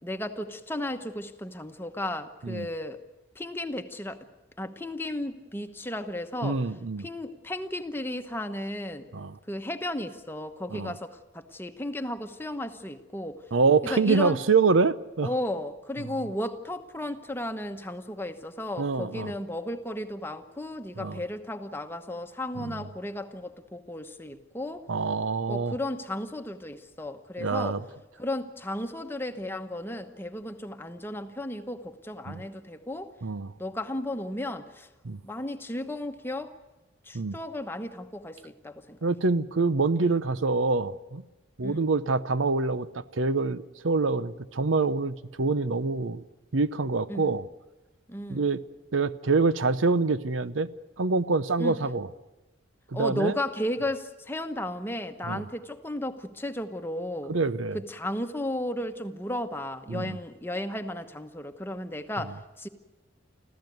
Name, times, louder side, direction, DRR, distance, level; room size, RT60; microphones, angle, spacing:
voice 1, 0.0-3.0 3.3-4.3 4.6-6.6 7.0-9.1 9.5-13.4 13.9-14.4 15.2-24.9 25.5-27.8 28.2-33.1 33.6-34.9 35.2-36.5 37.0-39.0 41.6-41.9 47.1-47.3 48.1-48.5 51.6-51.8 52.9-57.3 57.7-62.7, left 1 dB, 10° left, 8 dB, 1.1 m, -34 dB
voice 2, 6.4-7.1 9.1-9.4 10.7-10.9 13.5-15.3 16.0-16.1 18.8-19.3 21.0-21.2 22.6-22.8 24.9-25.7 27.4-27.8 32.3-32.4 33.2-33.5 35.0-35.2 37.1-37.4 39.0-41.2 41.6-46.2 46.5-47.4 48.3-48.6 48.9-50.7 51.0-52.1 52.9-53.3 55.3-55.4 57.3-57.8 59.9-60.2, right 4 dB, 85° right, 15 dB, 0.8 m, -26 dB
25.5 x 15.5 x 9.3 m, 1.1 s
head